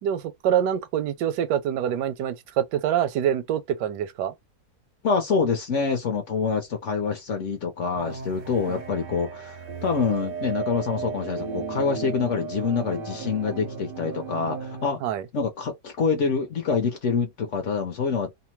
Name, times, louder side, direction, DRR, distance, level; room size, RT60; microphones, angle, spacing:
voice 1, 0.0-4.3 8.7-8.8 15.0-15.3, right 9 dB, 85° right, 1.2 m, -25 dB
voice 2, 5.0-15.0 15.3-18.3, left 5 dB, 60° left, 0.8 m, -26 dB
sound 1, 8.0-14.9, right 5 dB, 55° right, 0.6 m, -35 dB
2.8 x 2.0 x 3.0 m
omnidirectional pair, 1.8 m